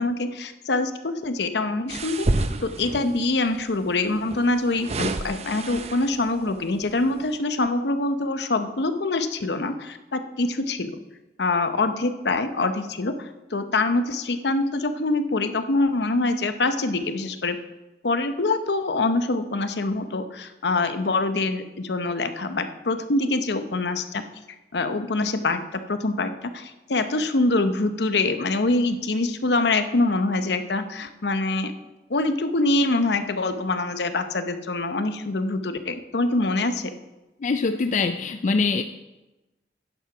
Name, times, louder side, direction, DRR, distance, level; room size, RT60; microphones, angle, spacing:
voice 1, 0.0-2.3 2.6-11.0 11.4-17.6 18.0-24.2 24.7-25.6 25.9-31.7 32.1-36.9, left 2 dB, 70° left, 9 dB, 0.8 m, -24 dB
sound 1, 1.9-3.2 4.2-6.3 6.8-7.0, right 2 dB, 35° right, 0.6 m, -29 dB
voice 2, 37.4-38.8, left 4 dB, 45° left, 8 dB, 0.4 m, -23 dB
10.0 x 7.3 x 5.9 m, 1.1 s
head